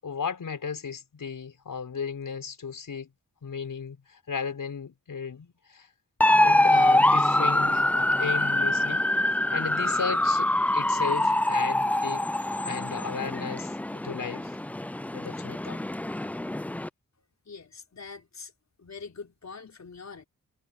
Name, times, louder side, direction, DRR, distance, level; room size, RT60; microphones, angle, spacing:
voice 1, 0.0-3.1 3.4-5.9 6.4-9.0 9.5-12.3 12.7-14.6 15.1-15.8, left 6 dB, 70° left, 5.7 m, -35 dB
sound 1, 6.2-16.9, left 1 dB, 5° left, 0.3 m, -24 dB
voice 2, 17.5-18.5 18.8-20.2, left 5 dB, 50° left, 4.5 m, -43 dB
cardioid pair, 50°, 34 cm